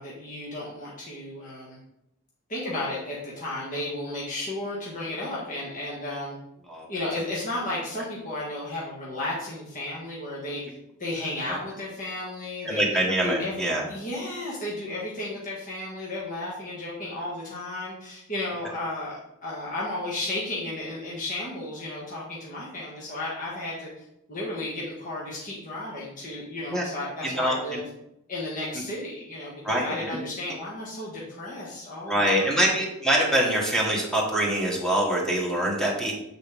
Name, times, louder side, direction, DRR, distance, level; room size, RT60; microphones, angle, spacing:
voice 1, 0.0-1.8 2.5-6.4 6.9-10.6 11.0-19.2 19.4-23.9 24.3-27.9 28.3-32.7, left 1 dB, 40° left, -6 dB, 1.5 m, -33 dB
voice 2, 12.6-13.8 26.7-26.8 27.2-27.8 29.6-30.1 32.1-36.1, right 1 dB, 5° left, -3 dB, 1.4 m, -24 dB
7.9 x 4.1 x 3.5 m, 0.81 s
head